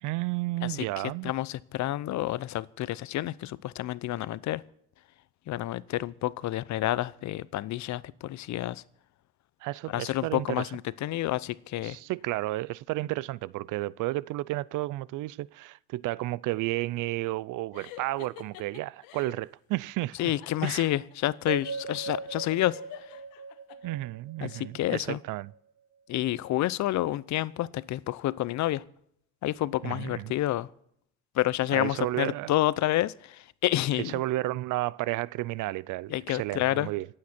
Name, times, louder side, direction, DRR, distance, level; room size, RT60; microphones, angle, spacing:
voice 1, 0.0-1.3 9.6-10.7 11.8-20.2 20.6-20.9 23.8-25.5 29.8-30.3 31.7-32.6 34.0-37.1, right 18 dB, 60° right, 0.5 m, -32 dB
voice 2, 1.2-4.6 5.5-8.8 9.9-12.0 20.2-22.8 24.4-25.2 26.1-28.8 29.4-30.7 31.4-34.1 36.1-36.9, left 15 dB, 55° left, 0.7 m, -29 dB
sound 1, 17.7-19.5 20.2-23.8, left 14 dB, 75° left, 1.4 m, -49 dB
sound 2, 21.5-25.6, right 4 dB, 40° right, 2.3 m, -39 dB
26.0 x 8.8 x 4.4 m
supercardioid pair, 95°, 35 cm